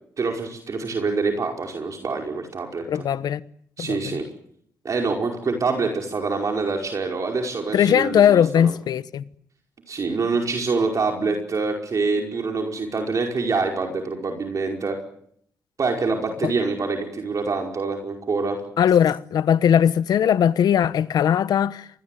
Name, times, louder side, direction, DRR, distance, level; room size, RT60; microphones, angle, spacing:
voice 1, 0.2-3.1 3.8-4.3 4.9-8.7 9.9-15.0 15.8-18.6, right 4 dB, 50° right, 5.1 m, -25 dB
voice 2, 2.9-3.4 3.8-4.2 7.7-9.2 16.4-16.5 18.8-21.9, left 9 dB, 75° left, 1.2 m, -19 dB
26.5 x 21.0 x 9.3 m
cardioid pair, 65°, 7 cm